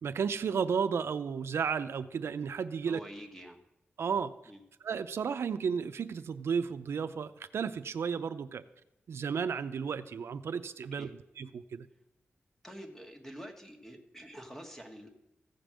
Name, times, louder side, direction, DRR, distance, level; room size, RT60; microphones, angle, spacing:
voice 1, 0.0-3.0 4.0-4.3 4.8-8.6 9.1-11.1 11.4-11.9, right 6 dB, 85° right, 10 dB, 0.5 m, -33 dB
voice 2, 2.7-3.6 4.4-4.6 10.9-11.1 12.6-15.1, equal, 10° left, 3 dB, 1.5 m, -47 dB
15.0 x 5.2 x 7.5 m, 0.87 s
wide cardioid pair, 115°, 4 cm